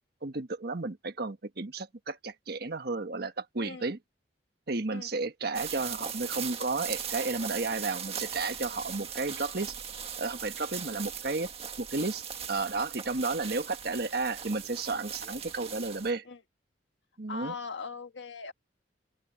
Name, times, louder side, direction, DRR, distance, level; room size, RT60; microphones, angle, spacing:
voice 1, 0.2-4.0 4.7-9.7 10.2-11.5 11.8-16.2 17.2-17.5, right 3 dB, 55° right, 1.4 m, -33 dB
voice 2, 3.6-3.9 4.9-5.1 9.0-9.1 11.0-11.1 16.2-16.4 17.3-18.5, left 4 dB, 75° left, 1.5 m, -40 dB
sound 1, 5.5-16.1, right 8 dB, 35° right, 1.8 m, -39 dB
open air
head